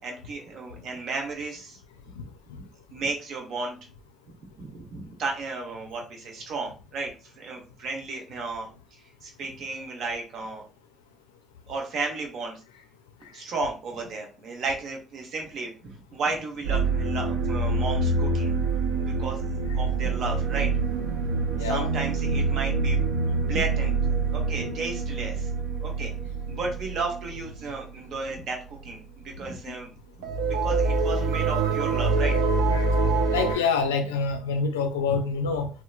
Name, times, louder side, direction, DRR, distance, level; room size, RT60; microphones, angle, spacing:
voice 1, 0.0-1.8 2.9-3.8 4.5-7.1 7.4-8.7 9.2-10.6 11.7-12.6 13.3-18.5 19.2-19.5 19.7-20.7 21.6-23.0 23.3-23.9 24.3-25.5 25.8-26.1 26.5-29.9 30.6-32.3, right 3 dB, 60° right, 0.8 m, -33 dB
sound 1, 16.6-28.0 28.3-28.5 28.7-28.9 30.2-33.5, right 3 dB, 80° right, 0.4 m, -26 dB
voice 2, 21.6-21.9 24.6-24.7 29.7-29.8 32.7-32.9 33.3-35.7, left 5 dB, 85° left, 0.3 m, -27 dB
2.9 x 2.1 x 2.3 m
hypercardioid pair, 50°, 0 cm